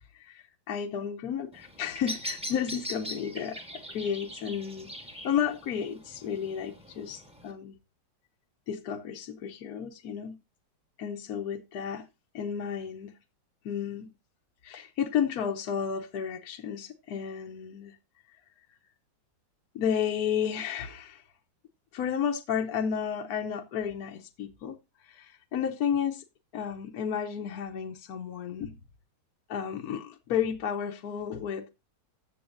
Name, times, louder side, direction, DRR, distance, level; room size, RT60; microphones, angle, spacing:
voice 1, 0.1-4.9 5.2-7.8 8.7-10.4 11.0-12.1 12.3-13.1 13.6-14.1 14.6-18.0 19.7-21.2 21.9-26.2 26.5-28.8 29.5-31.7, left 8 dB, 60° left, 1.1 m, -32 dB
Bird vocalization bird call bird song, 1.5-7.5, equal, 5° right, 1.1 m, -41 dB
14.0 x 7.3 x 2.5 m
omnidirectional pair, 2.0 m